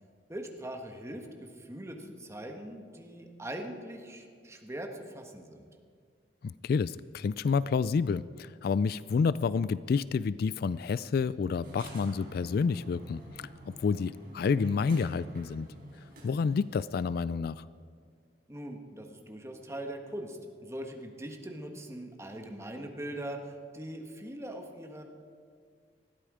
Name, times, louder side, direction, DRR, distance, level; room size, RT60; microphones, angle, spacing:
voice 1, 0.3-5.7 18.5-25.0, right 1 dB, 15° right, 3 dB, 1.5 m, -41 dB
voice 2, 6.4-15.7 16.2-17.6, left 5 dB, 55° left, 18 dB, 0.3 m, -29 dB
sound 1, 11.6-16.9, right 1 dB, 55° right, 5.3 m, -48 dB
20.0 x 13.5 x 5.0 m, 2.1 s
head